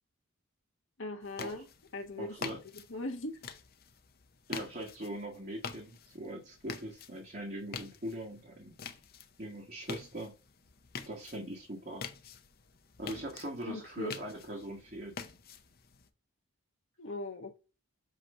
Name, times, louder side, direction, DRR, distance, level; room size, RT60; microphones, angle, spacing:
voice 1, 1.0-1.7 1.9-2.5 2.9-3.3 13.7-14.2 17.0-17.6, left 2 dB, 65° left, 1.2 m, -39 dB
sound 1, 1.2-16.1, left 5 dB, 45° left, 0.7 m, -47 dB
voice 2, 2.2-2.6 4.5-8.7 9.4-10.3 11.1-12.1 13.0-15.2, right 1 dB, 40° right, 1.4 m, -41 dB
7.9 x 3.1 x 5.3 m
head